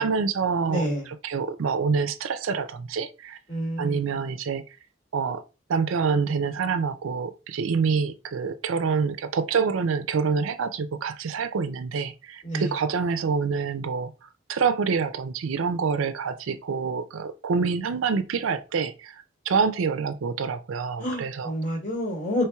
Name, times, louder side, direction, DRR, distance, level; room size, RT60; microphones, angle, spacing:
voice 1, 0.0-3.4 3.8-4.6 5.1-5.4 5.7-14.1 14.5-21.5, right 5 dB, 85° right, 0.4 m, -26 dB
voice 2, 0.7-1.0 3.5-4.1 12.4-12.7 21.0-22.4, equal, 35° left, 2.2 m, -28 dB
4.3 x 3.3 x 2.3 m
head